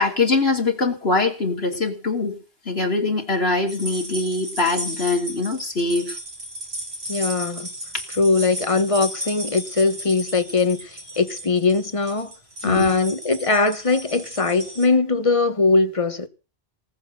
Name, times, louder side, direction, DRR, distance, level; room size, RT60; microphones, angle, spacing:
voice 1, 0.0-2.4 2.6-6.2 12.6-12.9, left 3 dB, 75° left, 3.2 m, -22 dB
sound 1, 3.7-14.8, right 1 dB, 75° right, 5.0 m, -35 dB
voice 2, 7.1-7.7 8.2-12.3 12.6-16.3, left 3 dB, 30° left, 1.4 m, -21 dB
19.5 x 7.3 x 7.9 m
omnidirectional pair, 1.1 m